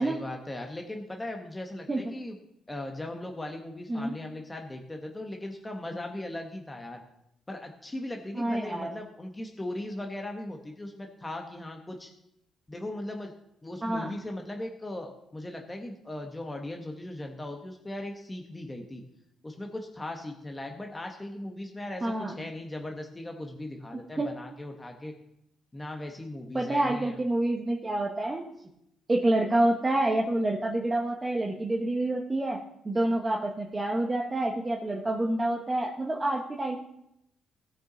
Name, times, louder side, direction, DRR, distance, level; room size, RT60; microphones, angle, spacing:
voice 1, 0.0-2.4 2.7-7.0 7.5-12.1 12.7-13.3 13.6-19.0 19.4-25.1 25.7-27.2, left 1 dB, 15° left, 2 dB, 1.2 m, -38 dB
voice 2, 8.3-8.9 13.8-14.1 22.0-22.3 24.2-24.3 26.5-28.4 29.1-32.6 32.8-36.8, right 1 dB, 20° right, -1 dB, 1.2 m, -27 dB
17.0 x 6.2 x 3.9 m, 0.80 s
cardioid pair, 90°, 0 cm